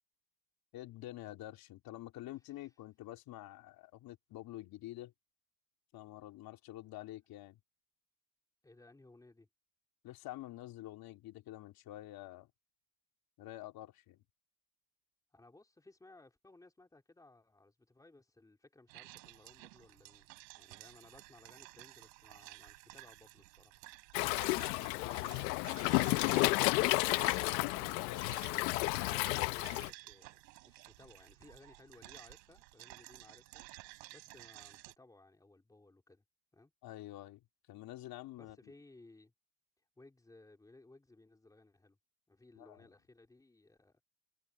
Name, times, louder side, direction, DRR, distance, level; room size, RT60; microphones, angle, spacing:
voice 1, 0.7-5.1 5.9-7.6 10.0-12.5 13.4-14.2 24.6-26.6 28.1-28.5 36.8-37.4 37.7-38.6 42.5-42.9, left 15 dB, 45° left, 3.3 m, -48 dB
voice 2, 8.6-9.5 15.3-23.8 29.1-36.2 36.5-36.7 38.4-39.3 40.0-42.0 42.3-44.0, left 2 dB, 5° left, 3.3 m, -60 dB
sound 1, 18.9-34.9, right 24 dB, 90° right, 5.4 m, -54 dB
Waves surf, 24.1-29.9, left 24 dB, 85° left, 0.7 m, -32 dB
cardioid pair, 150°, 48 cm